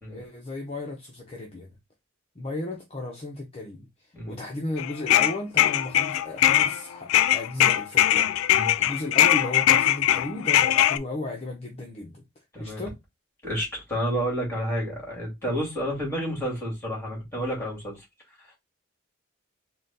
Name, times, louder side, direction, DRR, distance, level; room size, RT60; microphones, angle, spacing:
voice 1, 0.1-1.7 2.3-8.3 8.8-12.2 12.6-13.0, left 2 dB, 30° left, 0.7 m, -35 dB
sound 1, 4.8-6.8 7.1-11.0, left 12 dB, 90° left, 0.3 m, -21 dB
voice 2, 8.5-8.9 12.5-12.8 13.4-18.1 18.4-18.6, equal, 10° left, 2.2 m, -30 dB
3.9 x 2.3 x 3.9 m
head